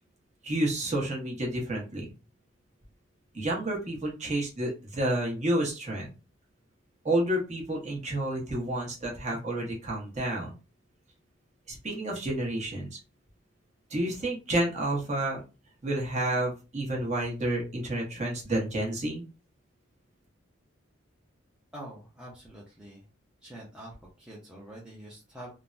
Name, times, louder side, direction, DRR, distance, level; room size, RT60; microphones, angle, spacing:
voice 1, 0.4-2.1 3.3-6.1 7.0-10.5 11.7-12.9 13.9-15.4 15.8-19.2, right 1 dB, 35° right, -2 dB, 1.0 m, -30 dB
voice 2, 21.7-23.0 23.4-25.5, right 1 dB, 5° right, -5 dB, 0.6 m, -45 dB
3.3 x 2.1 x 2.6 m, 0.30 s
head